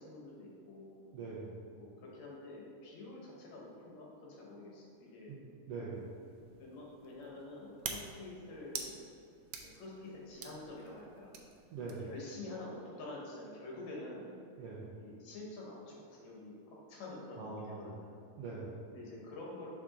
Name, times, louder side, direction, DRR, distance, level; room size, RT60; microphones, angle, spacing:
voice 1, 0.0-1.1 1.7-5.3 6.6-9.0 9.6-11.3 12.0-14.4 14.9-16.5 16.9-18.1 18.9-19.7, left 2 dB, 65° left, -3 dB, 2.2 m, -47 dB
voice 2, 1.1-1.6 5.3-5.4 5.7-6.1 11.7-12.1 14.6-14.8 17.4-17.9 18.4-18.8, right 4 dB, 75° right, -6 dB, 1.4 m, -42 dB
sound 1, 5.9-12.2, right 6 dB, 90° right, 1.4 m, -48 dB
5.8 x 4.8 x 3.7 m, 2.4 s
omnidirectional pair, 3.6 m